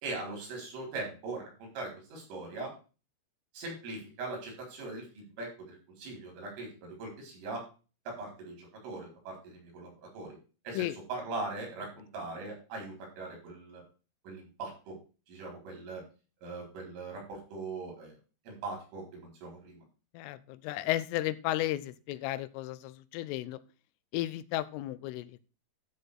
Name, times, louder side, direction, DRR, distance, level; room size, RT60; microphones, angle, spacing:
voice 1, 0.0-2.8 3.5-7.7 8.1-10.4 10.7-13.8 14.3-15.0 15.3-16.0 16.4-18.2 18.5-19.8, right 3 dB, 80° right, 0 dB, 6.9 m, -41 dB
voice 2, 20.1-23.6 24.1-25.5, left 15 dB, 90° left, 15 dB, 3.3 m, -34 dB
12.5 x 4.4 x 6.5 m, 0.34 s
omnidirectional pair, 5.6 m